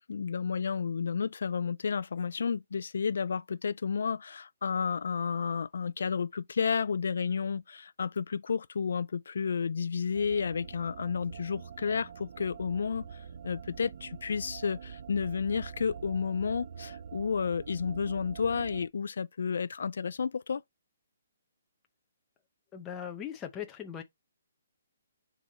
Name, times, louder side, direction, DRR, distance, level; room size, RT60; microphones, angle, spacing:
voice 1, 0.1-20.6, left 6 dB, 70° left, 0.3 m, -31 dB
sound 1, 10.1-18.9, right 7 dB, 50° right, 0.5 m, -45 dB
voice 2, 22.7-24.0, left 9 dB, 15° left, 0.7 m, -39 dB
6.9 x 3.5 x 4.0 m
hypercardioid pair, 170°, 0 cm